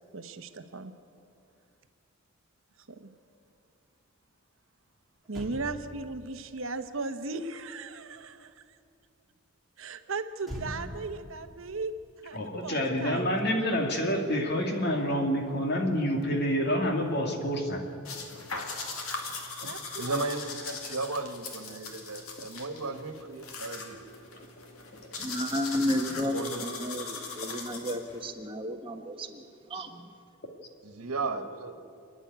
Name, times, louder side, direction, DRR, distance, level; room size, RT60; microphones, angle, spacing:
voice 1, 0.1-0.9 2.9-3.1 5.3-8.8 9.8-13.4 19.6-20.2, right 3 dB, 60° right, 8 dB, 0.9 m, -37 dB
Motor vehicle (road), 4.8-4.9 5.2-8.8 10.4-13.0 13.3-13.5, equal, ahead, 2.8 m, -45 dB
voice 2, 12.3-17.8, equal, 50° left, 3 dB, 2.3 m, -28 dB
sound 1, 18.0-28.3, left 4 dB, 75° left, 2.4 m, -40 dB
voice 3, 20.0-24.0 26.1-26.6 31.0-31.8, right 3 dB, 90° right, 8 dB, 1.4 m, -35 dB
voice 4, 25.2-30.1, equal, 25° right, 4 dB, 1.3 m, -32 dB
28.0 x 10.0 x 9.4 m, 2.5 s
head